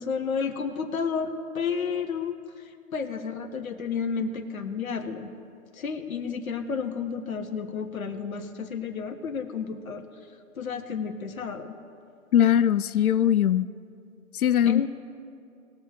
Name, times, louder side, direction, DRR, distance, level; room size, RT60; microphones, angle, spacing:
voice 1, 0.0-5.3 5.7-10.0 10.5-11.7 14.6-14.9, left 6 dB, 75° left, 6 dB, 1.5 m, -31 dB
voice 2, 12.3-13.7 14.3-14.9, left 10 dB, 90° left, 14 dB, 0.6 m, -21 dB
20.0 x 7.4 x 3.2 m, 2.5 s
hypercardioid pair, 160°, 42 cm